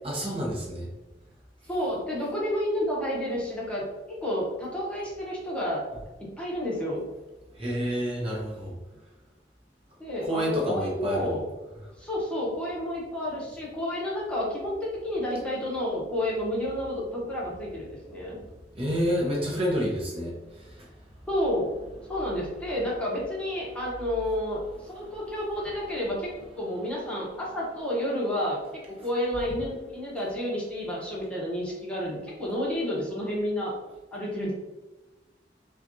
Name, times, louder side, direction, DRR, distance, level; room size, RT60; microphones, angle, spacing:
voice 1, 0.0-0.9 7.6-8.7 10.3-11.3 18.8-20.3, equal, 35° right, -3 dB, 0.8 m, -28 dB
voice 2, 1.7-5.8 6.2-7.0 10.0-11.4 12.0-18.4 21.3-21.7 22.1-26.3 26.6-28.6 29.0-33.7 34.1-34.5, left 1 dB, 5° left, -5 dB, 1.0 m, -30 dB
5.7 x 2.4 x 2.6 m, 1.1 s
head